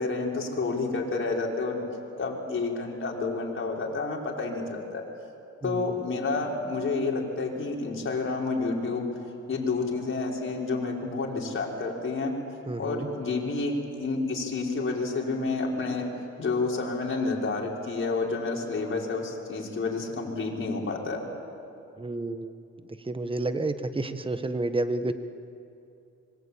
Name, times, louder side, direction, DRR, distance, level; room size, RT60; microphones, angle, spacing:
voice 1, 0.0-1.8 2.2-5.0 5.6-9.1 9.5-12.3 12.8-16.1 16.4-21.2, left 3 dB, 40° left, -1 dB, 5.6 m, -29 dB
voice 2, 5.6-5.9 12.7-13.1 22.0-22.6 23.0-25.1, right 2 dB, 15° right, 9 dB, 1.5 m, -30 dB
26.0 x 23.0 x 8.8 m, 2.6 s
cardioid pair, 90°, 30 cm